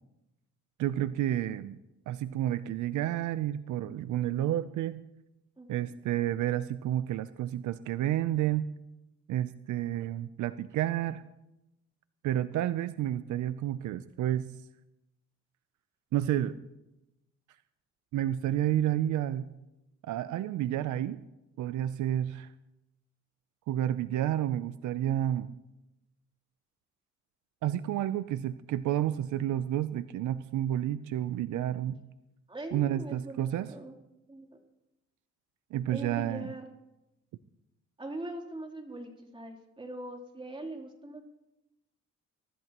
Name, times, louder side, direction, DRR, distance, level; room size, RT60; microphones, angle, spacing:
voice 1, 0.8-1.8 2.1-5.0 5.7-8.7 9.3-11.2 12.2-14.5 16.1-16.6 18.1-19.5 20.1-21.2 21.6-22.5 23.7-25.5 27.6-32.0 32.7-33.7 35.7-36.5, right 12 dB, 75° right, 13 dB, 0.6 m, -30 dB
voice 2, 5.6-5.9 32.5-33.9 34.3-34.6 35.9-36.6 38.0-41.2, right 1 dB, 15° right, 0 dB, 3.3 m, -41 dB
23.5 x 13.5 x 3.0 m, 0.94 s
cardioid pair, 90°, 30 cm